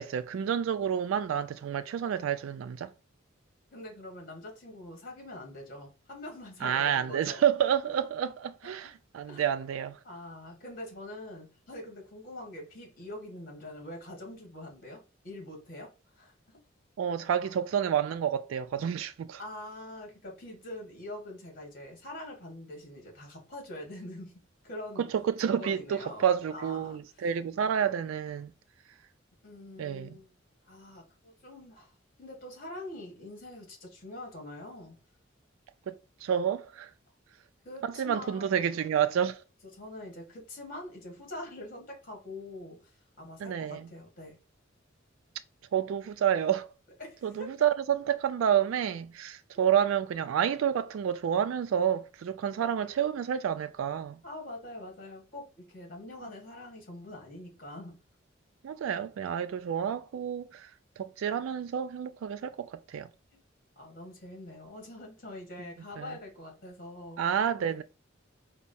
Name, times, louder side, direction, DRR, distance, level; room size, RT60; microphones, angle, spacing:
voice 1, 0.0-2.9 6.6-10.0 17.0-19.4 25.0-28.5 29.8-30.2 35.9-36.9 37.8-39.4 43.4-43.9 45.7-46.7 47.2-54.2 58.6-60.7 61.0-63.1 66.0-66.1 67.2-67.8, right 8 dB, 85° right, 0.3 m, -29 dB
voice 2, 3.7-7.4 8.0-8.5 9.2-9.5 10.0-16.6 19.4-25.1 25.6-27.3 29.4-30.3 30.7-31.9 32.2-35.0 37.7-38.7 39.7-42.8 43.2-44.4 47.0-47.6 54.2-58.0 63.3-63.4 63.8-67.2 67.6-67.8, left 1 dB, 45° left, 1.8 m, -44 dB
4.6 x 2.0 x 4.1 m
head